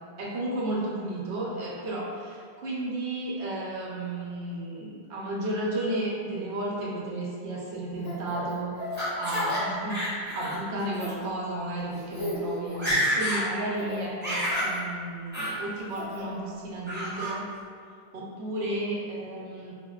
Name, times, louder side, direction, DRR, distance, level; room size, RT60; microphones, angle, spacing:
voice 1, 0.2-8.7 9.2-17.4 18.1-19.7, right 1 dB, 85° right, -4 dB, 0.9 m, -33 dB
Laughter, 8.0-9.6 9.9-10.6 10.9-11.1 11.8-11.9 12.1-12.4 12.7-13.4 13.8-14.7 15.3-15.5 15.9-16.4 16.9-17.3, equal, 10° right, 0.7 m, -30 dB
2.6 x 2.1 x 2.2 m, 2.2 s
omnidirectional pair, 1.1 m